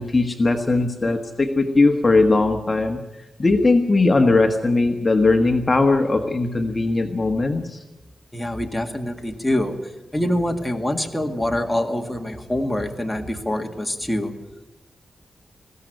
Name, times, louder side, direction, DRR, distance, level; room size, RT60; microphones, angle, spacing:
voice 1, 0.0-3.0 3.4-7.8, left 3 dB, 25° left, 4 dB, 1.4 m, -19 dB
voice 2, 8.3-14.3, left 1 dB, 5° left, 3 dB, 1.9 m, -25 dB
20.5 x 16.5 x 9.1 m, 1.0 s
wide cardioid pair, 135°, 0 cm